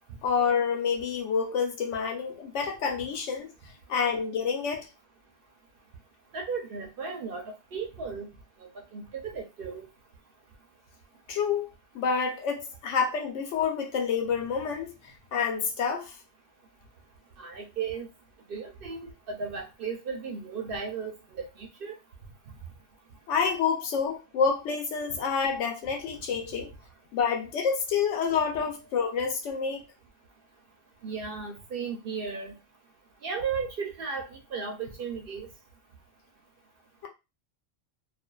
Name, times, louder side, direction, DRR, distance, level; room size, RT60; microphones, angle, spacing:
voice 1, 0.2-3.5 3.9-4.9 11.3-11.7 11.9-16.1 23.3-26.7 27.1-29.8, left 6 dB, 80° left, 1.0 m, -28 dB
voice 2, 6.3-8.3 8.6-9.9 17.4-18.1 18.5-21.9 31.0-32.5 33.2-35.5, right 5 dB, 60° right, 0.7 m, -35 dB
2.5 x 2.3 x 2.2 m
omnidirectional pair, 1.2 m